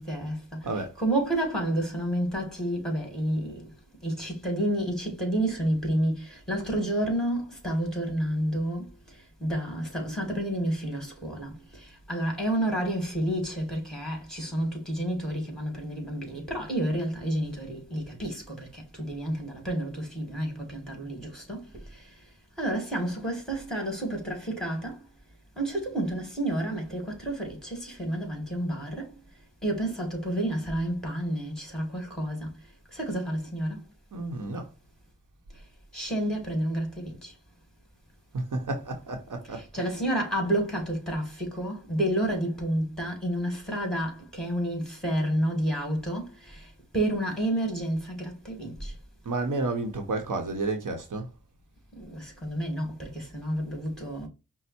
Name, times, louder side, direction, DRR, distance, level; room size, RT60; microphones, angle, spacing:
voice 1, 0.0-0.6 1.0-3.7 4.0-22.2 22.6-25.0 25.6-29.1 29.6-32.5 32.9-33.8 35.9-37.3 39.5-49.0 52.0-54.3, right 1 dB, ahead, 2.4 m, -30 dB
voice 2, 0.6-0.9 34.1-34.7 38.3-39.9 49.2-51.3, right 2 dB, 70° right, 0.9 m, -31 dB
5.3 x 2.0 x 4.2 m
wide cardioid pair, 65°, 32 cm